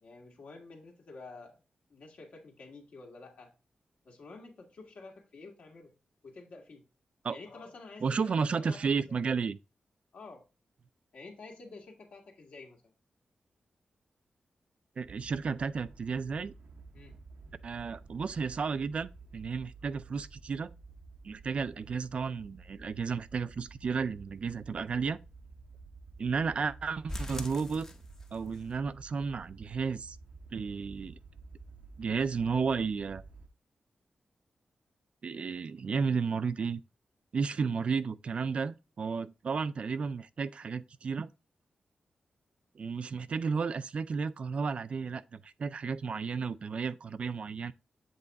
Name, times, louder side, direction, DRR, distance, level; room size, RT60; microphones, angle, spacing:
voice 1, 0.0-1.6 1.9-3.5 4.1-5.9 6.2-6.8 7.3-9.2 10.1-10.4 11.1-12.9 16.9-17.2, left 3 dB, 70° left, 1.8 m, -50 dB
voice 2, 8.0-9.6 15.0-16.5 17.6-20.7 21.2-25.2 26.2-27.9 28.3-30.2 30.5-31.2 32.0-33.2 35.2-36.8 37.3-41.3 42.8-47.7, right 5 dB, 50° right, 0.3 m, -33 dB
sound 1, 15.0-33.5, right 4 dB, 85° right, 0.8 m, -52 dB
sound 2, 27.1-28.6 28.9-29.0 29.5-29.6 30.0-30.1, left 1 dB, 20° left, 0.7 m, -41 dB
7.8 x 3.5 x 4.0 m
wide cardioid pair, 160°, 3 cm